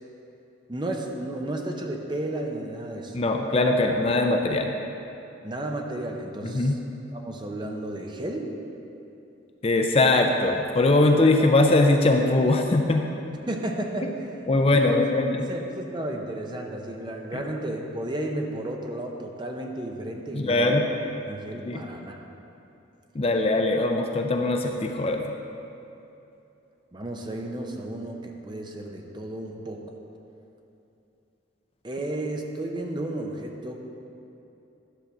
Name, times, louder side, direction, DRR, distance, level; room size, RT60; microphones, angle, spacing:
voice 1, 0.7-3.2 5.4-6.8 7.1-8.5 13.5-15.0 15.4-20.8 21.3-22.2 26.9-29.8 31.8-33.8, right 1 dB, 25° right, 2 dB, 0.6 m, -33 dB
voice 2, 3.1-4.8 6.4-6.8 9.6-13.1 14.5-15.4 17.3-17.4 20.3-20.9 21.6-21.9 23.1-25.2, left 2 dB, 30° left, 3 dB, 0.4 m, -21 dB
11.5 x 3.9 x 6.7 m, 2.8 s
head